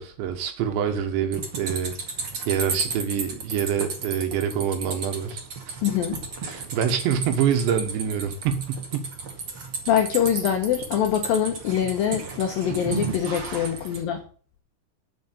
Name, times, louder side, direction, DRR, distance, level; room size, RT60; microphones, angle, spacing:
voice 1, 0.0-1.9 2.5-5.8 6.5-9.1, right 8 dB, 70° right, 3.4 m, -26 dB
sound 1, 1.3-14.0, right 4 dB, 40° right, 2.0 m, -33 dB
voice 2, 5.8-6.2 9.9-14.2, left 9 dB, 80° left, 2.1 m, -24 dB
7.9 x 7.4 x 8.2 m
omnidirectional pair, 5.6 m